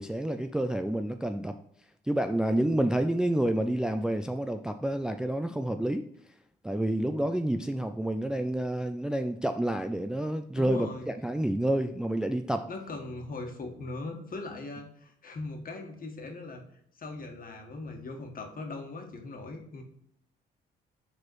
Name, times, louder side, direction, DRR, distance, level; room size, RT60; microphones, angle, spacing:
voice 1, 0.0-1.6 2.1-6.1 6.6-12.7, right 1 dB, 5° right, 7 dB, 0.4 m, -29 dB
voice 2, 10.5-11.1 12.7-16.6 17.0-19.8, left 2 dB, 45° left, 3 dB, 1.6 m, -40 dB
4.9 x 4.2 x 4.6 m, 0.71 s
supercardioid pair, 70°, 20 cm